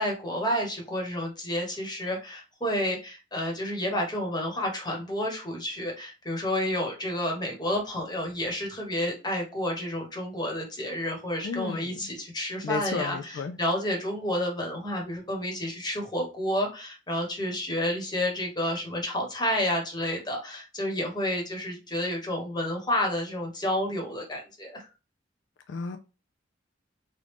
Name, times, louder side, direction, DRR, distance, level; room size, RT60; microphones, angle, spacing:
voice 1, 0.0-24.9, left 1 dB, 25° left, 1.1 m, -30 dB
voice 2, 11.4-12.0 12.6-13.6 25.7-26.0, left 4 dB, 70° left, 0.3 m, -32 dB
3.1 x 2.5 x 3.3 m
head